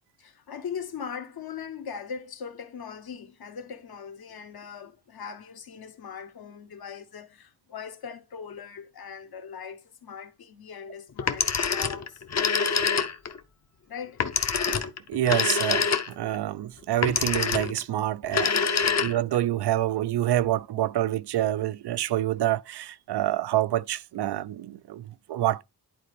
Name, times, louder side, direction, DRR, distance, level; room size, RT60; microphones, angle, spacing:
voice 1, 0.2-12.2 13.9-14.2, left 7 dB, 65° left, 1.1 m, -40 dB
Telephone, 11.2-13.4 14.2-16.3 17.0-17.8 18.2-19.4, left 6 dB, 45° left, 0.7 m, -25 dB
voice 2, 15.1-18.5 18.8-25.6, right 13 dB, 85° right, 0.5 m, -27 dB
11.0 x 4.1 x 3.3 m
wide cardioid pair, 105°, 39 cm